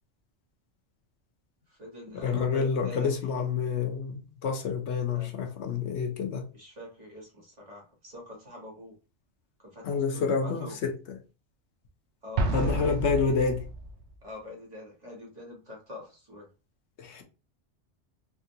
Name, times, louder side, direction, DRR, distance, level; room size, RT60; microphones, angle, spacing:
voice 1, 1.7-3.1 5.1-5.3 6.5-8.9 9.6-10.8 12.2-13.5 14.2-16.5, left 1 dB, 35° right, 1.4 m, -43 dB
voice 2, 2.2-6.4 9.8-10.9 12.5-13.6 17.0-17.2, left 5 dB, 75° left, 1.0 m, -28 dB
Explosion, 12.4-14.1, right 2 dB, 75° right, 0.9 m, -30 dB
3.6 x 2.4 x 2.7 m
omnidirectional pair, 1.2 m